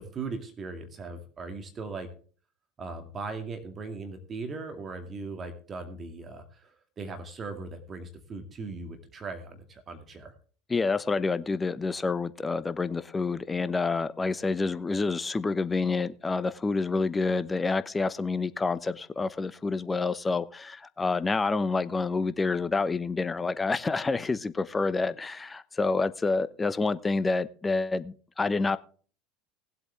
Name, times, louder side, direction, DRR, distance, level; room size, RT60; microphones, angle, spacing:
voice 1, 0.0-2.1 2.8-10.3, right 3 dB, 30° right, 2.2 m, -39 dB
voice 2, 10.7-28.8, left 3 dB, 20° left, 0.9 m, -28 dB
19.5 x 8.1 x 3.5 m
hypercardioid pair, 75°, 0 cm